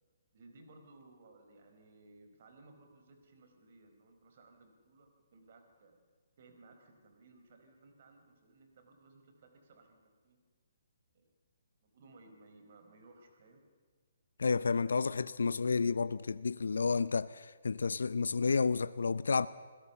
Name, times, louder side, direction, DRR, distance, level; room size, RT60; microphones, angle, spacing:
voice 1, 0.3-6.0 6.4-10.4 11.1-11.3 11.8-13.6, right 2 dB, 50° right, 4.3 m, -60 dB
voice 2, 14.4-19.5, left 4 dB, 85° left, 0.5 m, -31 dB
27.5 x 16.5 x 7.0 m
hypercardioid pair, 155°, 0 cm